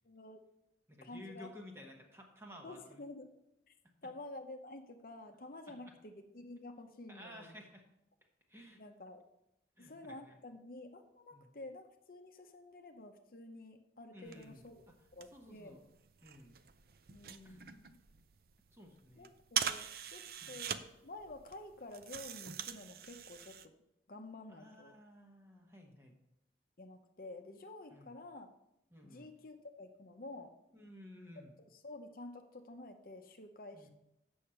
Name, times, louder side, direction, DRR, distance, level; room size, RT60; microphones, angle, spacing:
voice 1, 0.0-0.4 1.0-1.5 2.6-3.3 3.7-3.8 4.0-7.6 8.8-9.2 9.8-14.8 15.1-15.8 17.1-18.0 19.2-20.2 20.5-23.7 24.1-24.9 26.8-28.5 29.0-30.5 31.7-33.9, left 2 dB, 50° left, 5 dB, 0.8 m, -50 dB
voice 2, 0.9-3.0 5.7-5.9 7.1-7.8 8.5-8.8 9.8-10.4 11.3-11.5 14.1-14.7 15.3-15.8 16.2-16.6 17.4-17.6 18.7-19.3 20.4-20.6 24.5-26.2 27.9-28.2 28.9-29.3 30.7-31.5 33.7-33.9, left 1 dB, 15° right, 1 dB, 1.2 m, -54 dB
sound 1, 14.3-23.7, right 8 dB, 55° right, 0.5 m, -43 dB
8.3 x 6.4 x 5.7 m, 0.85 s
head